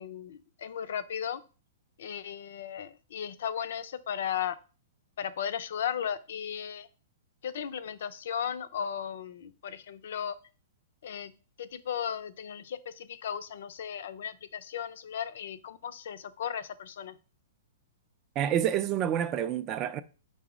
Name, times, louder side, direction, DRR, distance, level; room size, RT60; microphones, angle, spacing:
voice 1, 0.0-1.4 2.0-4.6 5.2-6.9 7.4-10.3 11.0-11.3 11.6-17.1, left 8 dB, 70° left, 0.4 m, -36 dB
voice 2, 18.4-20.0, right 10 dB, 30° right, 0.3 m, -28 dB
5.1 x 2.0 x 4.8 m
hypercardioid pair, 135°, 0 cm